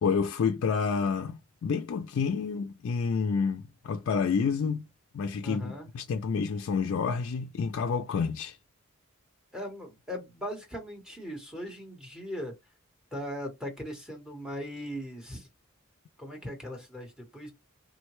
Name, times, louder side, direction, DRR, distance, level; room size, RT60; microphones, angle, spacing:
voice 1, 0.0-4.9 5.1-8.6, left 5 dB, 60° left, 0.3 m, -29 dB
voice 2, 5.4-5.9 9.5-12.5 13.1-15.5 16.2-17.5, equal, 5° right, 0.9 m, -39 dB
3.7 x 2.1 x 3.0 m
head